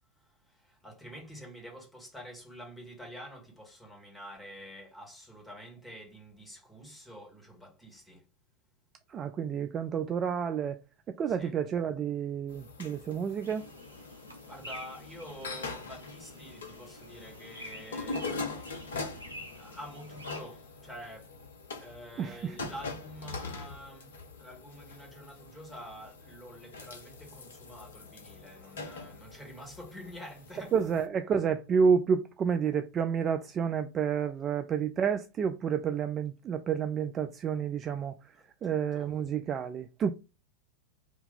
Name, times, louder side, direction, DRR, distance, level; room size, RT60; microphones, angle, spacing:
voice 1, 0.1-8.2 11.3-11.6 14.5-18.9 19.3-21.3 21.8-30.7 38.3-39.1, equal, 5° left, 1.8 m, -48 dB
voice 2, 9.1-10.8 11.1-13.6 22.2-22.5 30.7-38.2 38.6-40.1, right 7 dB, 25° right, 0.3 m, -29 dB
sound 1, 12.5-31.1, left 3 dB, 65° left, 0.9 m, -43 dB
sound 2, 13.4-20.4, equal, 90° left, 1.1 m, -48 dB
4.0 x 2.9 x 3.5 m
figure-of-eight pair, 90°, 0 cm